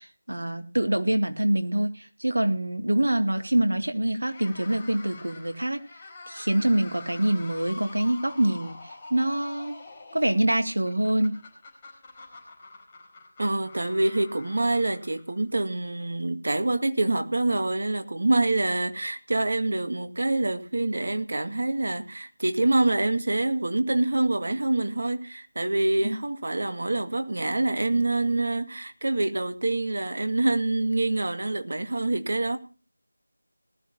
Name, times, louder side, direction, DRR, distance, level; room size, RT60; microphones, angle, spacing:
voice 1, 0.0-5.8 6.3-8.8 9.1-9.7 10.1-11.4 26.0-26.2, right 1 dB, 70° right, 2.4 m, -25 dB
sound 1, 4.2-15.5, left 3 dB, 20° left, 4.7 m, -46 dB
voice 2, 13.4-32.6, right 2 dB, 55° right, 1.9 m, -26 dB
20.0 x 13.0 x 2.8 m
figure-of-eight pair, 170°, 0 cm